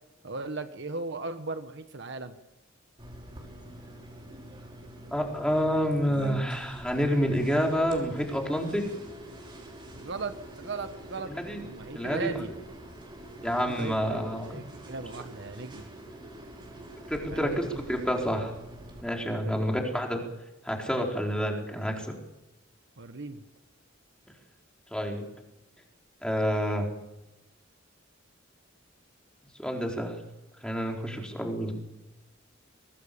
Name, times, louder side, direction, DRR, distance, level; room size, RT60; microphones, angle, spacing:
voice 1, 0.2-2.3 10.0-11.3 11.6-12.5 13.4-15.9 17.3-17.8 19.3-19.7 23.0-23.4, right 3 dB, 60° right, 8 dB, 1.4 m, -37 dB
sound 1, 3.0-19.0, right 1 dB, 25° right, 5.3 m, -45 dB
voice 2, 5.1-8.8 11.2-11.6 11.9-12.6 13.4-14.6 17.1-18.5 19.0-20.2 20.6-22.1 24.9-25.2 26.2-26.9 29.6-30.2 30.6-31.7, equal, 5° left, 1 dB, 4.3 m, -28 dB
24.5 x 19.5 x 6.9 m, 0.96 s
head